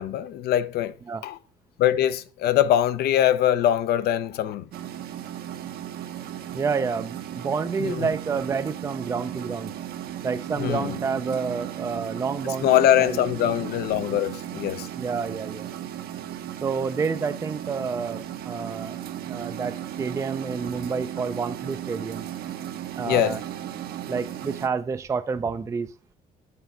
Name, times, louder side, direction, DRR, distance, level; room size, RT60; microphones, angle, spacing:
voice 1, 0.0-0.9 1.2-1.4 1.8-4.7 7.8-8.1 10.6-11.0 12.6-14.9 23.1-23.4, left 11 dB, 70° left, 0.6 m, -22 dB
sound 1, 4.7-24.7, right 11 dB, 65° right, 0.8 m, -36 dB
voice 2, 6.5-9.7 10.2-13.2 15.0-15.7 16.6-19.0 19.3-22.3 23.0-23.4 24.1-25.9, right 5 dB, 20° right, 0.4 m, -29 dB
7.0 x 4.5 x 5.4 m
cardioid pair, 110°, 17 cm